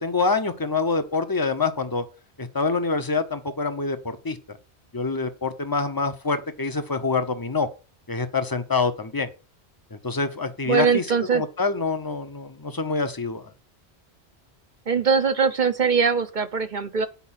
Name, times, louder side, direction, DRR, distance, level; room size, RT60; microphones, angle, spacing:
voice 1, 0.0-2.1 2.4-4.6 4.9-7.7 8.1-9.3 9.9-13.5, left 4 dB, 20° left, 8 dB, 0.8 m, -26 dB
voice 2, 10.7-11.4 14.9-17.1, right 5 dB, 45° right, 9 dB, 0.9 m, -21 dB
8.4 x 5.3 x 7.4 m, 0.34 s
omnidirectional pair, 1.1 m